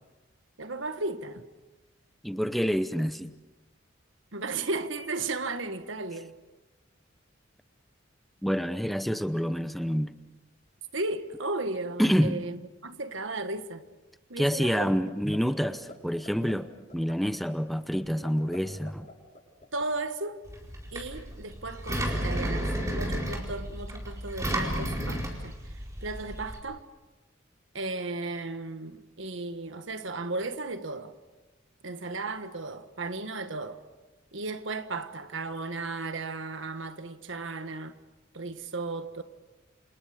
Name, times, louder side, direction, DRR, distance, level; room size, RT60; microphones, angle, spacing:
voice 1, 0.6-1.4 4.3-6.3 10.9-13.8 14.3-15.1 19.7-20.4 20.9-26.8 27.7-31.1 31.8-33.8 34.3-37.9 38.3-39.2, right 3 dB, 75° right, 1.6 m, -35 dB
voice 2, 2.2-3.3 8.4-10.1 12.0-12.4 14.4-19.1, equal, ahead, 0.7 m, -27 dB
sound 1, 15.1-15.4 15.6-15.9 16.2-16.5 16.9-17.1 17.5-17.6 17.9-18.6 18.8-19.8, left 2 dB, 40° left, 7.5 m, -44 dB
Engine, 20.5-26.6, equal, 15° right, 4.6 m, -32 dB
29.0 x 27.5 x 5.1 m
head